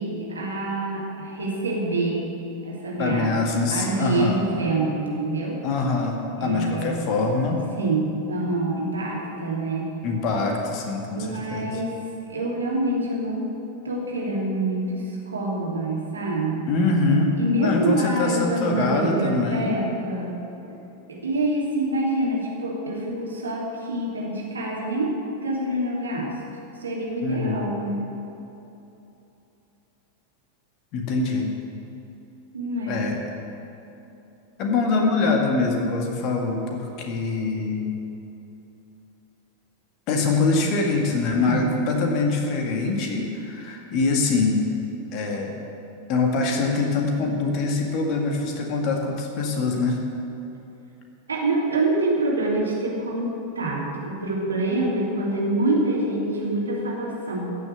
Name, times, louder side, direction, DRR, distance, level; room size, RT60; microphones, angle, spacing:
voice 1, 0.0-2.3 2.6-5.6 6.4-6.9 7.7-9.9 11.1-11.9 12.3-13.5 13.8-16.7 17.4-20.4 21.1-25.2 25.4-26.3 26.8-28.0 32.5-33.0 41.4-41.8 51.3-57.6, right 2 dB, 75° right, -3 dB, 2.8 m, -26 dB
voice 2, 3.0-4.4 5.6-7.6 10.0-11.8 16.7-19.8 27.2-27.6 30.9-31.5 32.9-33.2 34.6-37.9 40.1-44.6 45.1-45.5 46.1-50.0, left 3 dB, 40° left, 2 dB, 1.9 m, -24 dB
15.0 x 6.6 x 8.2 m, 3.0 s
figure-of-eight pair, 90°, 0 cm